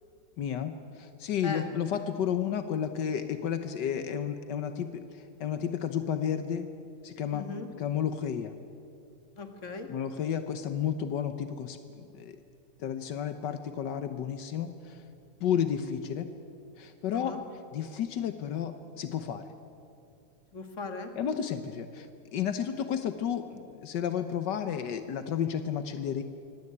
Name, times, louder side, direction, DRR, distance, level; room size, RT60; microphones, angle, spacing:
voice 1, 0.4-6.7 7.0-7.5 7.8-8.5 9.9-12.4 12.8-15.0 15.4-16.3 16.8-17.3 17.7-19.5 21.2-26.2, left 8 dB, 85° left, 9 dB, 1.6 m, -32 dB
voice 2, 7.3-7.7 9.4-9.9 17.1-17.4 20.5-21.1, left 4 dB, 45° left, 6 dB, 2.3 m, -38 dB
24.5 x 17.5 x 9.6 m, 2.6 s
omnidirectional pair, 1.8 m